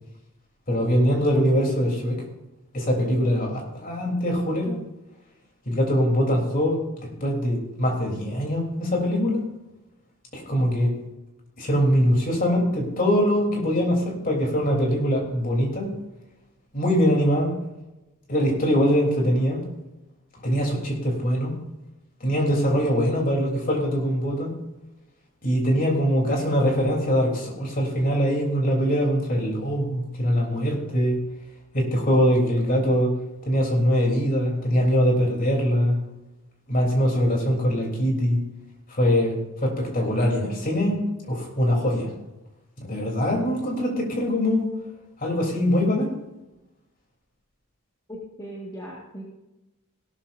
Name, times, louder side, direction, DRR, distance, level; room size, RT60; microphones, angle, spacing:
voice 1, 0.7-2.2 2.7-4.7 5.7-9.4 10.3-10.9 11.6-15.9 16.7-17.5 18.3-19.6 20.4-21.5 22.2-24.5 25.4-31.2 31.7-33.1 33.5-36.0 36.7-38.4 38.9-42.1 42.8-44.7 45.2-46.1, equal, 40° left, 0 dB, 3.5 m, -22 dB
voice 2, 48.1-49.2, equal, 15° left, -4 dB, 1.8 m, -38 dB
17.5 x 12.5 x 2.7 m, 0.98 s
head